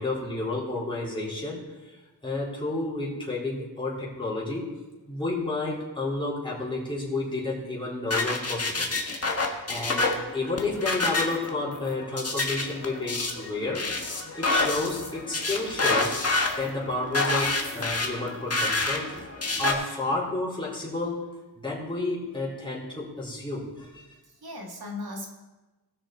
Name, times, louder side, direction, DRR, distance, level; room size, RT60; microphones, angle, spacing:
voice 1, 0.0-2.0 2.2-4.7 5.1-8.9 9.7-13.9 14.3-16.2 16.6-19.3 19.6-21.2 21.6-24.1, left 2 dB, 10° left, -6 dB, 3.8 m, -31 dB
sound 1, 8.1-19.7, left 3 dB, 35° left, 1.5 m, -28 dB
voice 2, 24.2-25.3, left 2 dB, 65° right, 1 dB, 2.3 m, -38 dB
19.0 x 6.5 x 4.5 m, 1.1 s
wide cardioid pair, 90°, 40 cm